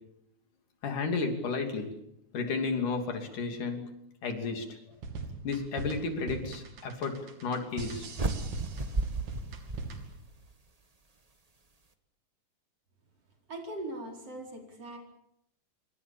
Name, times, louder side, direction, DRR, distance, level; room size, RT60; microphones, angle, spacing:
voice 1, 0.8-2.0 2.3-3.9 4.2-4.8 5.4-8.1, left 4 dB, 80° left, 5 dB, 4.4 m, -32 dB
sound 1, 4.9-10.2, right 4 dB, 80° right, 4.2 m, -40 dB
sound 2, 8.1-10.5, right 2 dB, 65° right, 0.3 m, -33 dB
voice 2, 13.5-15.0, right 1 dB, 50° right, 2 dB, 5.6 m, -40 dB
26.0 x 24.0 x 7.1 m, 0.77 s
omnidirectional pair, 3.7 m